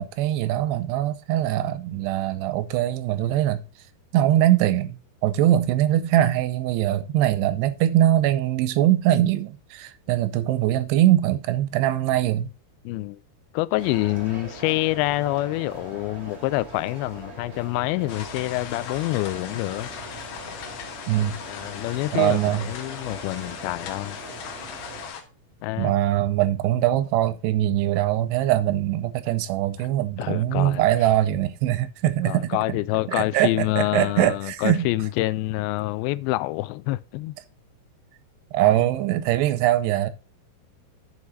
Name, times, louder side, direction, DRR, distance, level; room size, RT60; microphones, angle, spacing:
voice 1, 0.0-3.6 4.1-5.0 5.2-12.5 21.1-21.4 22.1-22.7 25.8-32.8 33.1-34.9 38.5-40.1, right 13 dB, 90° right, 2.8 m, -22 dB
voice 2, 12.9-13.2 13.5-19.9 21.5-24.2 25.6-25.9 30.2-30.8 32.3-37.4 38.7-38.8, left 18 dB, 85° left, 2.2 m, -27 dB
sound 1, 13.8-25.1, right 2 dB, 35° right, 1.1 m, -42 dB
sound 2, 18.1-25.2, left 7 dB, 70° left, 2.5 m, -38 dB
9.7 x 4.9 x 4.0 m
omnidirectional pair, 4.7 m